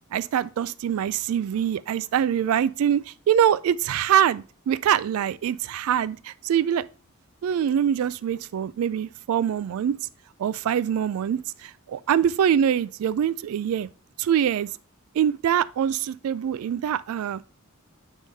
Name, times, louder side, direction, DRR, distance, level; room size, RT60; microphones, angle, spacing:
voice 1, 0.1-6.9 7.4-10.0 10.4-13.9 14.2-14.7 15.1-17.4, right 9 dB, 90° right, 0.3 m, -24 dB
9.6 x 3.6 x 2.7 m
head